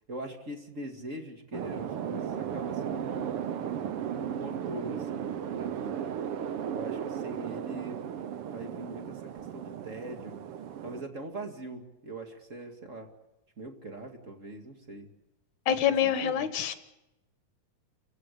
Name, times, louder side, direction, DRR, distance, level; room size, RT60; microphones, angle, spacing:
voice 1, 0.1-3.5 4.1-6.1 6.7-8.1 8.5-10.4 10.8-13.1 13.6-15.1 15.7-16.4, right 1 dB, 25° right, 4 dB, 2.1 m, -42 dB
sound 1, 1.5-11.0, right 9 dB, 75° right, 1.3 m, -35 dB
voice 2, 15.7-16.7, left 9 dB, 65° left, 10 dB, 2.4 m, -26 dB
30.0 x 16.5 x 8.3 m, 0.94 s
omnidirectional pair, 4.0 m